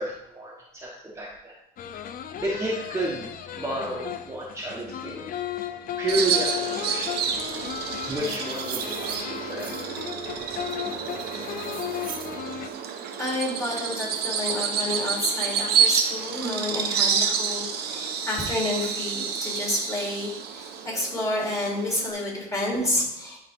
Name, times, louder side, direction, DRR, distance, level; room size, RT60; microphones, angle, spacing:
voice 1, 0.0-1.5 2.4-5.3 6.0-9.9 10.3-10.6, right 1 dB, 15° right, -4 dB, 1.3 m, -32 dB
sound 1, 1.8-12.7, left 10 dB, 55° left, 0.6 m, -35 dB
Bird vocalization bird call bird song, 6.1-22.1, right 7 dB, 75° right, 1.0 m, -29 dB
sound 2, 8.0-10.1 10.7-12.4, right 10 dB, 55° right, 0.6 m, -41 dB
voice 2, 13.2-23.4, left 1 dB, 20° left, -4 dB, 3.1 m, -29 dB
10.5 x 4.0 x 3.7 m, 0.81 s
cardioid pair, 110°, 17 cm